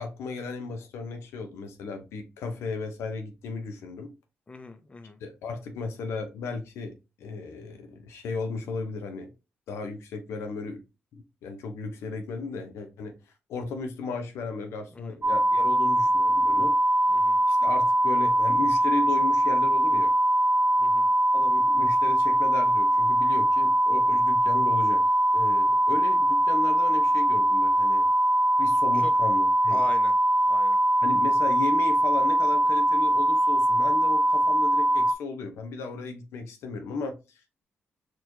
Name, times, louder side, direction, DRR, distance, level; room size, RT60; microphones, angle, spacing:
voice 1, 0.0-4.1 5.2-9.3 9.7-10.8 11.1-13.1 13.5-16.7 17.5-20.1 21.3-25.0 25.3-28.1 28.6-29.8 31.0-37.2, left 4 dB, 85° left, 6 dB, 0.7 m, -35 dB
voice 2, 4.5-5.2 14.9-15.2 17.1-17.4 20.8-21.1 28.9-29.1 29.7-30.1 30.5-30.8, left 3 dB, 25° left, 8 dB, 0.6 m, -40 dB
sound 1, 15.2-35.1, right 1 dB, 30° right, 0.5 m, -22 dB
4.3 x 3.0 x 2.7 m, 0.28 s
cardioid pair, 70°, 4 cm